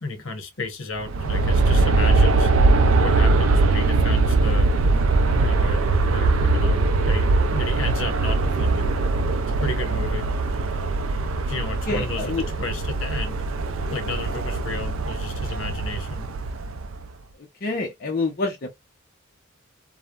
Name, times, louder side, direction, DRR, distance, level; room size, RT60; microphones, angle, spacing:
voice 1, 0.0-2.5 3.0-4.7 5.4-8.9 9.5-10.3 11.5-13.4 13.9-16.2, left 3 dB, 70° left, 0.9 m, -33 dB
Aircraft, 1.0-17.0, right 3 dB, 75° right, 0.4 m, -21 dB
voice 2, 11.9-12.5 17.6-18.7, left 3 dB, 45° left, 0.5 m, -26 dB
3.2 x 2.0 x 2.2 m
head